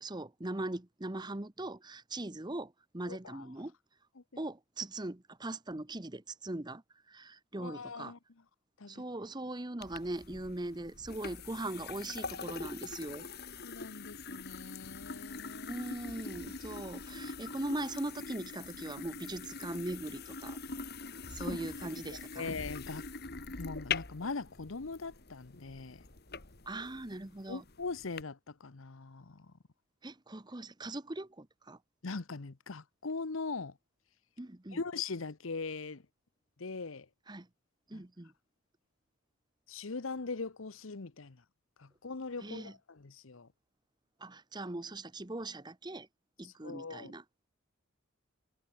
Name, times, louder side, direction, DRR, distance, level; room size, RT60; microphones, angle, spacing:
voice 1, 0.0-3.7 4.4-6.8 7.1-8.1 8.9-13.3 15.7-20.6 21.3-22.5 26.7-27.6 30.0-31.8 34.4-34.8 37.3-37.5 37.9-38.3 42.4-42.7 44.2-46.1 46.4-47.2, right 2 dB, 20° right, 0.9 m, -40 dB
voice 2, 3.1-3.5 4.2-4.4 7.6-8.2 8.8-9.0 13.6-15.8 21.3-23.1 23.6-26.0 27.5-29.5 32.0-33.8 34.7-36.1 36.6-37.1 37.9-38.0 39.7-41.4 41.8-43.5 46.4-47.2, left 4 dB, 70° left, 0.9 m, -41 dB
sound 1, 9.8-28.2, left 4 dB, 50° left, 2.3 m, -43 dB
head